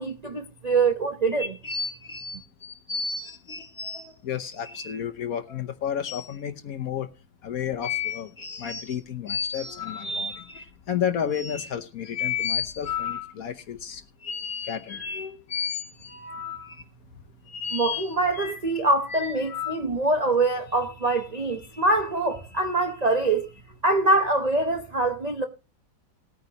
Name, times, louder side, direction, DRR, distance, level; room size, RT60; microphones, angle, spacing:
voice 1, 0.0-1.6 17.7-23.5 23.8-25.4, right 2 dB, 50° right, 0.5 m, -24 dB
sound 1, 1.3-4.1 4.5-5.0 5.5-5.6 6.1-6.3 7.8-8.9 9.3-10.6 11.3-11.7 12.1-13.3 14.2-16.8 17.5-18.6 19.1-19.8, left 6 dB, 30° left, 1.7 m, -33 dB
voice 2, 4.2-7.1 7.4-8.3 8.6-14.0 14.6-15.0, left 9 dB, 60° left, 1.1 m, -32 dB
19.0 x 9.3 x 2.8 m
omnidirectional pair, 2.0 m